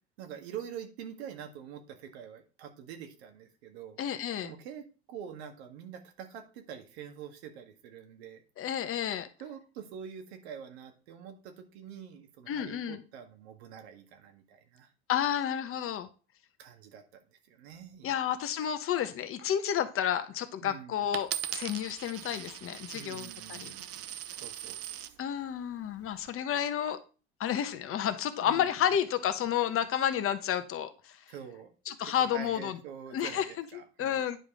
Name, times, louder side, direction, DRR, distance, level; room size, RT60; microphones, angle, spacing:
voice 1, 0.2-4.0 4.4-8.4 9.4-14.9 16.6-18.2 20.6-21.1 22.9-24.8 28.4-28.8 31.3-34.3, right 8 dB, 70° right, 1.7 m, -46 dB
voice 2, 4.0-4.5 8.6-9.3 12.5-13.0 15.1-16.1 18.0-23.7 25.2-27.0 27.4-31.2 31.9-32.8 33.1-33.4 34.0-34.4, left 9 dB, 40° left, 1.1 m, -31 dB
Coin (dropping), 21.1-25.1 25.8-26.3, right 11 dB, 45° right, 0.8 m, -40 dB
10.0 x 4.9 x 3.7 m
hypercardioid pair, 85°, 33 cm